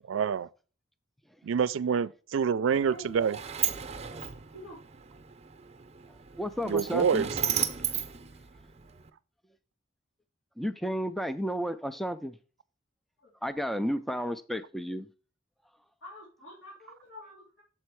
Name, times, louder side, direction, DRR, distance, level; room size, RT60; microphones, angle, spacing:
voice 1, 0.1-0.5 1.4-3.4 6.6-7.3, right 6 dB, 90° right, 0.4 m, -27 dB
Sliding door, 2.7-9.1, right 9 dB, 35° right, 0.6 m, -35 dB
voice 2, 2.8-3.2 4.5-4.8 16.0-17.6, equal, 80° left, 2.6 m, -47 dB
voice 3, 6.4-7.3 10.6-12.4 13.4-15.1, equal, ahead, 0.3 m, -32 dB
7.4 x 4.4 x 4.6 m
head